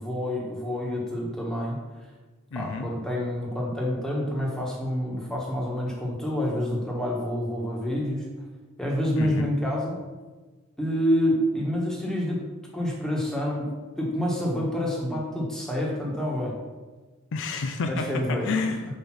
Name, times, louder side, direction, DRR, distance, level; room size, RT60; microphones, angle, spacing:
voice 1, 0.0-1.8 2.5-8.2 8.8-10.0 10.8-12.4 12.7-16.6 17.9-18.5, equal, 5° left, -3 dB, 1.3 m, -28 dB
voice 2, 2.5-2.9 9.2-9.5 17.3-19.0, left 4 dB, 60° left, 5 dB, 0.5 m, -30 dB
5.1 x 4.2 x 5.9 m, 1.3 s
head